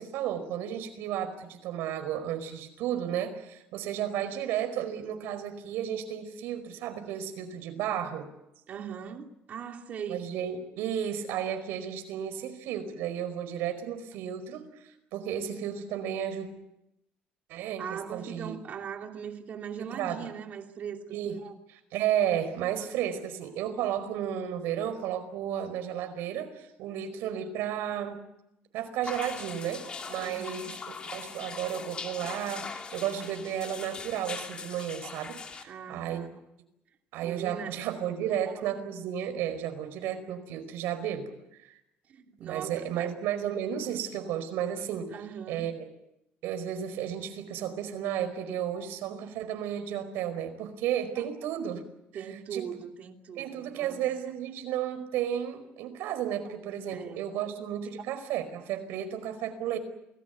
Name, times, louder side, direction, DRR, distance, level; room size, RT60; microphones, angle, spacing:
voice 1, 0.0-8.3 10.1-16.5 17.5-18.6 19.8-20.2 21.1-21.4 21.9-28.2 28.7-36.3 37.1-41.3 41.6-41.7 42.4-45.1 45.5-45.9 46.4-51.8 52.1-52.2 52.5-52.6 53.4-59.8, right 10 dB, 85° right, 9 dB, 4.8 m, -33 dB
voice 2, 8.7-10.2 17.8-21.5 30.2-30.8 35.7-36.4 37.2-37.8 38.3-38.9 42.1-43.1 45.1-45.7 51.2-51.3 52.1-54.0 56.9-57.3, right 7 dB, 45° right, 3 dB, 2.9 m, -40 dB
sound 1, 29.0-35.6, left 5 dB, 25° left, 2.6 m, -41 dB
28.5 x 19.5 x 8.3 m, 0.88 s
cardioid pair, 160°, 4 cm